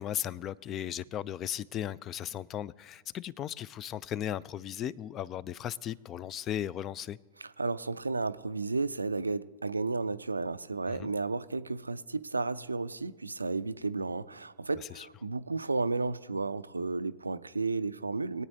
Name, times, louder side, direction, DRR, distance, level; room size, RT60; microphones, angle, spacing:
voice 1, 0.0-7.2 10.9-11.1 14.8-15.1, left 10 dB, 30° left, 22 dB, 0.3 m, -36 dB
voice 2, 7.4-18.4, right 3 dB, 80° right, 15 dB, 0.3 m, -33 dB
23.0 x 8.8 x 2.7 m, 1.4 s
figure-of-eight pair, 90°, 0 cm